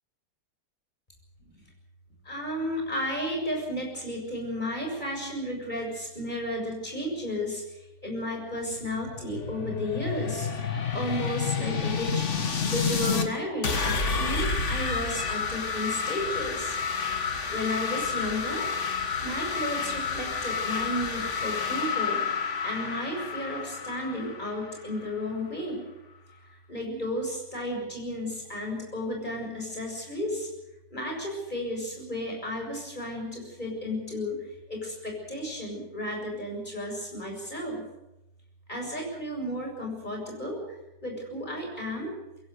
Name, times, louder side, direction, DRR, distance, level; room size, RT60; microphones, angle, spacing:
voice 1, 2.3-10.5 10.9-12.2 12.6-16.8 17.5-18.7 19.2-22.2 22.6-25.8 26.7-30.5 30.9-37.8 38.7-40.6 41.0-42.1, left 1 dB, 25° left, 1 dB, 7.2 m, -33 dB
sound 1, 8.6-13.3 13.6-25.2, left 5 dB, 40° left, 1.9 m, -30 dB
23.0 x 16.5 x 7.9 m, 0.94 s
omnidirectional pair, 1.9 m